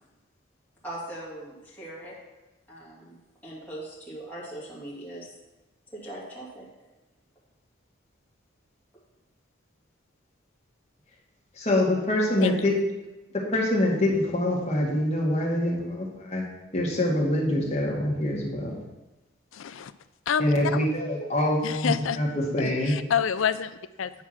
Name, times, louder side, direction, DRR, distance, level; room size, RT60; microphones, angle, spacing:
voice 1, 0.8-2.2 2.7-3.2 3.4-5.3 5.9-6.7, right 1 dB, 10° left, -8 dB, 2.6 m, -40 dB
voice 2, 11.6-12.7 13.5-16.4 16.7-18.8 20.4-22.9, left 1 dB, 30° left, -3 dB, 2.0 m, -25 dB
voice 3, 19.5-19.9 20.3-20.9 21.6-22.2 22.8-24.1, left 7 dB, 80° left, 13 dB, 0.4 m, -27 dB
9.5 x 4.8 x 5.9 m, 1.1 s
head